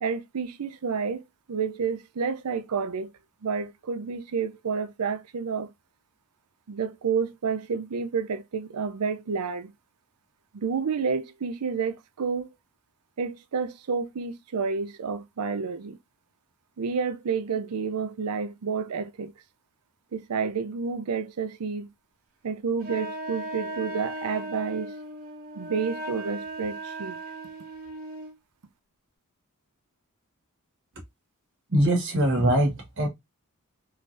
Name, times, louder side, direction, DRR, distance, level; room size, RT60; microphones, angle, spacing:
voice 1, 0.0-1.2 1.5-3.1 3.4-5.7 6.7-9.7 10.5-12.5 13.2-16.0 16.8-19.3 20.1-21.9 22.4-24.9 25.5-27.2, right 5 dB, 85° right, 0.5 m, -30 dB
Wind instrument woodwind instrument, 22.8-28.4, right 1 dB, 40° right, 1.3 m, -37 dB
voice 2, 31.7-33.1, right 1 dB, 55° right, 1.5 m, -22 dB
3.8 x 3.2 x 2.6 m
head